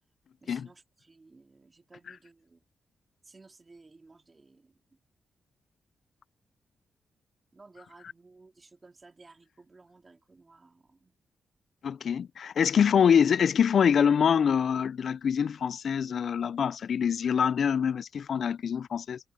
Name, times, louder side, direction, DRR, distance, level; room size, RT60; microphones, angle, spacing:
voice 1, 0.4-2.6 3.2-4.8 7.5-11.1, right 3 dB, 30° right, 3.6 m, -56 dB
voice 2, 11.8-19.2, left 7 dB, 65° left, 0.3 m, -25 dB
cardioid pair, 85°, 0 cm